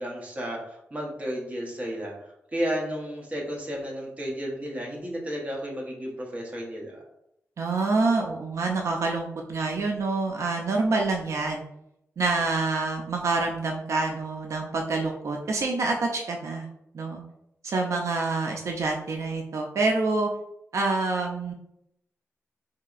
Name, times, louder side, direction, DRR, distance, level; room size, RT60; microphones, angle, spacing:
voice 1, 0.0-7.0, equal, 25° right, -2 dB, 0.9 m, -33 dB
voice 2, 7.6-11.6 12.2-16.7 16.9-17.2 17.6-20.3 20.7-21.5, right 3 dB, 75° right, 1 dB, 0.4 m, -27 dB
4.0 x 2.8 x 2.4 m, 0.80 s
wide cardioid pair, 120°, 5 cm